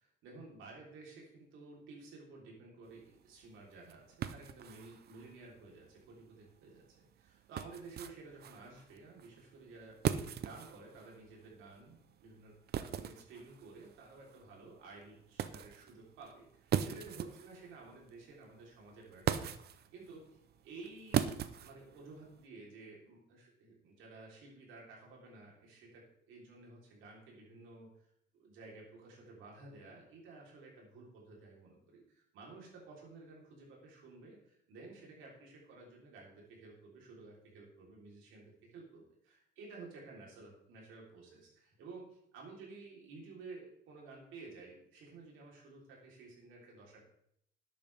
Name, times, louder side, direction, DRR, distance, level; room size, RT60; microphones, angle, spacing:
voice 1, 0.0-10.0 10.4-20.4 20.6-21.3 21.6-27.9 28.3-47.0, right 3 dB, 90° right, -2 dB, 3.6 m, -53 dB
sound 1, 2.9-22.5, right 9 dB, 55° right, 0.6 m, -41 dB
11.5 x 8.7 x 3.5 m, 0.71 s
cardioid pair, 120°, 20 cm